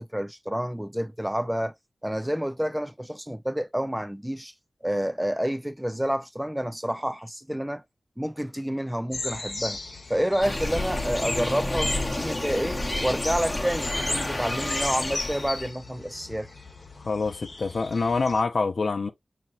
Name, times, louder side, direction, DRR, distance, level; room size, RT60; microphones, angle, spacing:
voice 1, 0.0-1.7 2.0-4.5 4.8-7.8 8.2-9.8 10.1-16.5, equal, 5° right, 0.4 m, -29 dB
sound 1, 9.1-18.4, left 3 dB, 55° left, 1.0 m, -39 dB
sound 2, 10.4-15.7, left 1 dB, 30° left, 0.9 m, -29 dB
voice 2, 17.0-19.1, left 4 dB, 75° left, 0.6 m, -26 dB
5.8 x 2.9 x 2.4 m
cardioid pair, 50°, 0 cm